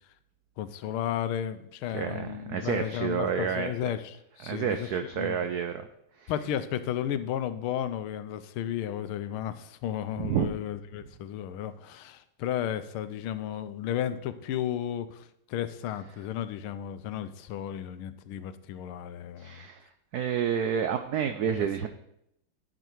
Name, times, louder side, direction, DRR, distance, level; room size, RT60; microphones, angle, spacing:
voice 1, 0.6-5.5 6.3-19.7, left 10 dB, 85° left, 12 dB, 1.5 m, -33 dB
voice 2, 1.9-3.7 4.4-5.9 6.2-6.3 10.2-10.5 19.4-19.8 20.1-21.9, right 8 dB, 85° right, 7 dB, 0.8 m, -29 dB
10.0 x 6.7 x 4.5 m, 0.77 s
omnidirectional pair, 2.3 m